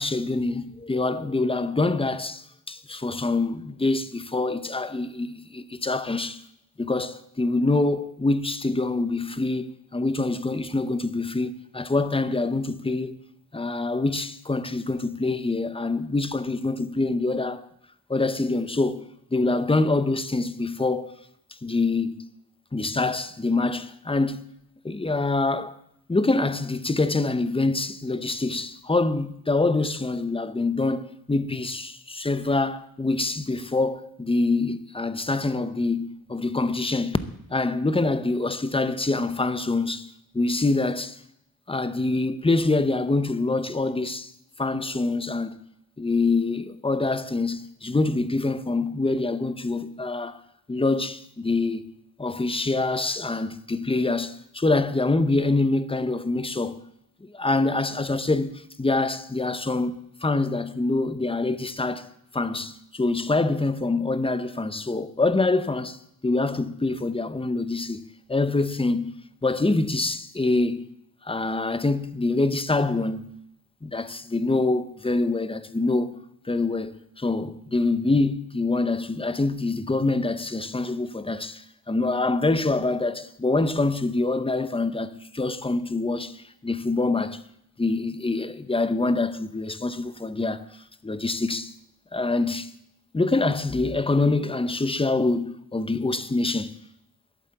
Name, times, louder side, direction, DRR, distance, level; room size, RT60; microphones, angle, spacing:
voice 1, 0.0-6.4 6.8-13.1 13.5-17.7 18.1-19.0 19.3-21.1 21.6-22.2 22.7-24.4 24.8-25.7 26.1-37.2 37.5-40.1 40.3-41.2 41.7-44.3 44.6-45.6 46.0-50.4 50.7-51.8 52.2-56.8 57.2-62.1 62.3-66.0 66.2-68.0 68.3-69.1 69.4-70.8 71.2-73.4 73.8-76.1 76.4-87.4 87.8-90.6 91.0-91.7 92.1-92.7 93.1-96.7, left 3 dB, 15° left, 0.7 m, -25 dB
12.0 x 8.6 x 7.8 m
wide cardioid pair, 120°, 35 cm